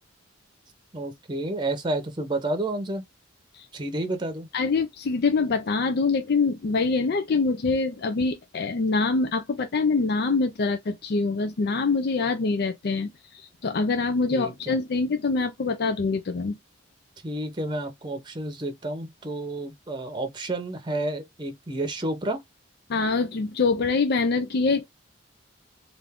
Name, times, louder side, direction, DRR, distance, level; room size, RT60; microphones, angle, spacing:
voice 1, 0.9-3.0 3.7-4.5 14.3-14.8 17.2-22.4, right 2 dB, 25° right, 0.7 m, -30 dB
voice 2, 4.5-16.6 22.9-24.9, left 4 dB, 55° left, 0.4 m, -25 dB
3.3 x 2.5 x 3.4 m
head